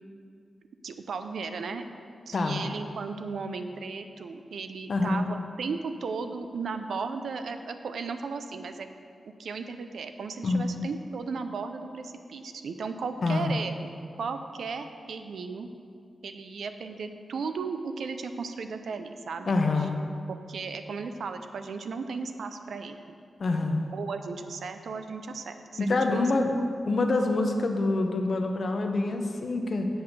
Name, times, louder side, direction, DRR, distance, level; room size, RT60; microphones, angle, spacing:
voice 1, 0.8-1.8 2.3-8.9 9.4-15.7 16.2-19.9 20.3-23.0 23.9-26.2, right 4 dB, 80° right, 8 dB, 0.5 m, -35 dB
voice 2, 2.3-2.7 4.9-5.2 10.4-10.7 13.2-13.5 19.5-20.0 23.4-23.8 25.8-26.5 26.9-29.9, left 3 dB, 50° left, 4 dB, 0.8 m, -26 dB
8.0 x 5.6 x 6.5 m, 2.4 s
wide cardioid pair, 145°, 0 cm